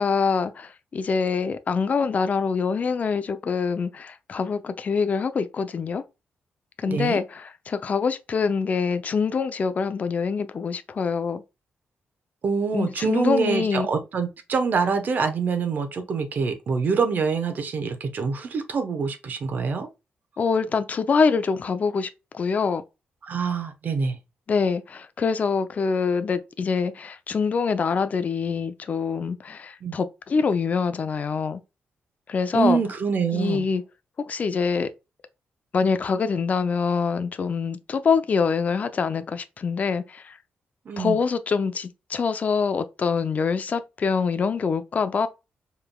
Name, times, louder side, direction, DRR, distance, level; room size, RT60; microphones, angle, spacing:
voice 1, 0.0-6.0 6.8-11.4 12.7-13.9 20.4-22.8 24.5-31.6 32.3-32.8 33.3-33.8 34.3-34.9 35.7-40.4 41.0-45.3, left 5 dB, 40° left, 0.5 m, -25 dB
voice 2, 6.9-7.2 12.4-19.9 23.3-24.2 29.8-30.0 32.5-33.7 40.9-41.2, right 5 dB, 50° right, 1.0 m, -25 dB
4.8 x 3.3 x 2.3 m
cardioid pair, 115°, 4 cm